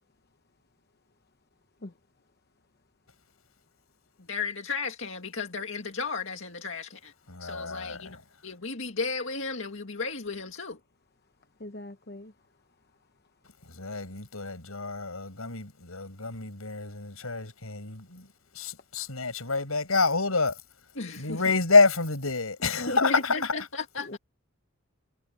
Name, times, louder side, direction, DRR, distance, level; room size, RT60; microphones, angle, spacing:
voice 1, 4.3-7.1 7.4-8.2 8.4-10.8 21.0-21.4 22.6-24.2, left 4 dB, 65° left, 2.1 m, -34 dB
voice 2, 7.3-8.0 13.8-18.3 18.6-20.5 21.2-23.5, left 3 dB, 90° left, 6.1 m, -27 dB
voice 3, 11.6-12.3 22.8-23.2 24.1-24.2, left 2 dB, 45° left, 0.9 m, -35 dB
head